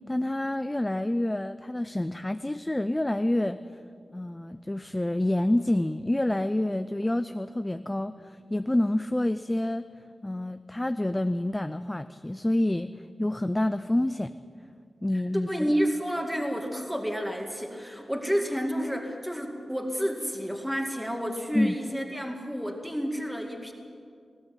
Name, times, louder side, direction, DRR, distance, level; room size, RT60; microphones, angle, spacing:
voice 1, 0.1-3.6 4.1-9.8 10.2-12.9 13.2-14.3 15.0-15.5 21.5-21.7, left 1 dB, 15° left, 11 dB, 0.4 m, -27 dB
voice 2, 15.1-23.7, equal, 5° right, 2 dB, 2.2 m, -30 dB
20.5 x 15.0 x 9.1 m, 2.3 s
wide cardioid pair, 105°, 0 cm